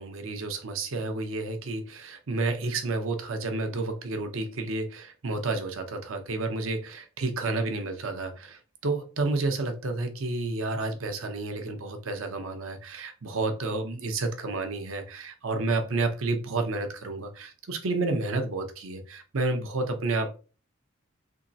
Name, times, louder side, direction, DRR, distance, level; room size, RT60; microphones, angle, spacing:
voice 1, 0.0-20.4, right 3 dB, 75° right, 6 dB, 0.7 m, -30 dB
3.6 x 3.0 x 2.7 m, 0.35 s
head